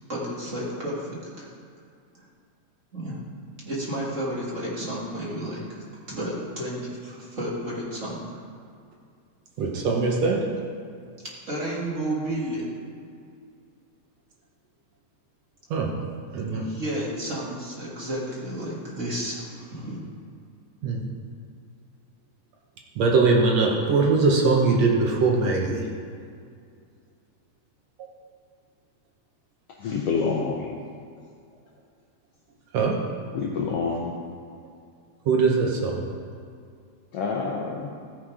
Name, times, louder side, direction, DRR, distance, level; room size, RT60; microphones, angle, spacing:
voice 1, 0.1-1.5 2.9-3.2 3.7-8.4 11.2-12.7 16.3-20.0, right 1 dB, 30° right, -6 dB, 1.7 m, -32 dB
voice 2, 9.6-10.5 15.7-15.9 16.3-16.7 20.8-21.1 23.0-25.9 32.7-33.0 35.3-36.1, right 4 dB, 65° right, 0 dB, 1.9 m, -21 dB
voice 3, 29.8-30.7 33.3-34.2 37.1-37.9, left 5 dB, 70° left, -1 dB, 1.5 m, -27 dB
14.5 x 6.3 x 4.8 m, 2.3 s
omnidirectional pair, 3.5 m